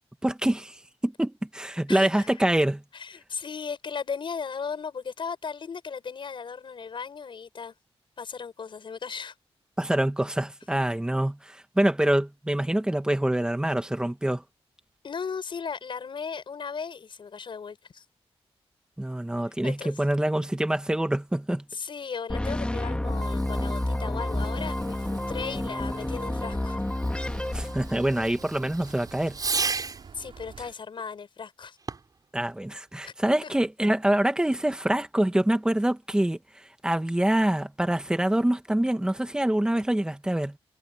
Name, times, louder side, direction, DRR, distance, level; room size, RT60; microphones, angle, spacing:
voice 1, 0.2-0.8 1.0-2.8 9.8-14.4 19.0-21.6 27.5-29.4 32.3-40.6, right 1 dB, 10° right, 1.7 m, -25 dB
voice 2, 1.9-2.4 2.9-7.7 8.2-9.3 15.0-18.0 19.6-20.0 21.7-26.8 30.1-31.8 33.0-33.1 33.4-33.5, left 6 dB, 55° left, 6.3 m, -36 dB
sound 1, 22.3-28.4, left 1 dB, 10° left, 2.3 m, -30 dB
Fireworks, 23.0-30.1 31.8-32.3, right 4 dB, 40° right, 6.8 m, -37 dB
sound 2, 24.3-30.7, right 6 dB, 60° right, 4.7 m, -47 dB
wide cardioid pair, 150°, 10 cm